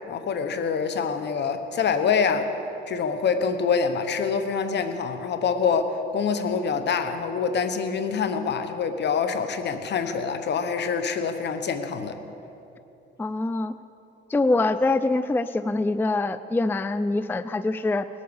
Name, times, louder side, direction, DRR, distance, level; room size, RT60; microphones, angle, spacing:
voice 1, 0.1-2.5 2.9-12.2, left 6 dB, 60° left, 9 dB, 1.2 m, -25 dB
voice 2, 13.2-13.7 14.3-18.1, left 2 dB, 10° left, 13 dB, 0.4 m, -24 dB
19.5 x 8.5 x 7.1 m, 3.0 s
cardioid pair, 90°, 20 cm